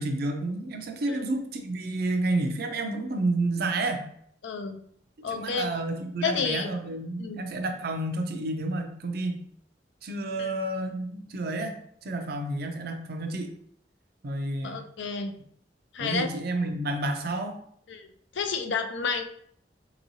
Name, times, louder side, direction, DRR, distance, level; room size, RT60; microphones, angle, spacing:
voice 1, 0.0-4.1 5.3-9.4 10.0-11.7 12.0-13.5 14.2-14.8 16.0-17.6, right 2 dB, 55° right, 5 dB, 0.5 m, -30 dB
voice 2, 4.4-4.8 5.2-5.7 6.2-6.7 7.2-7.4 10.4-10.5 14.6-15.3 15.9-16.3 17.9-19.2, left 5 dB, 75° left, 7 dB, 0.5 m, -31 dB
4.5 x 2.9 x 2.7 m, 0.65 s
head